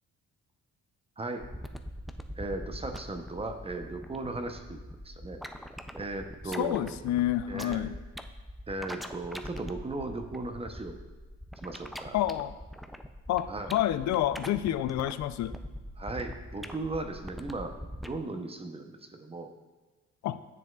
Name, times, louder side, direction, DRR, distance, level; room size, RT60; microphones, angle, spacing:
voice 1, 1.2-1.5 2.3-5.4 5.9-7.0 7.5-7.9 8.7-11.0 11.6-12.2 13.5-13.7 16.0-17.7 18.0-19.5, right 2 dB, 20° right, 6 dB, 0.7 m, -37 dB
sound 1, 1.4-18.2, equal, ahead, 0.4 m, -42 dB
voice 2, 6.5-7.9 12.1-12.6 13.3-15.6 20.2-20.4, left 12 dB, 65° left, 13 dB, 0.4 m, -29 dB
9.5 x 7.3 x 2.3 m, 1.3 s
cardioid pair, 90°, 30 cm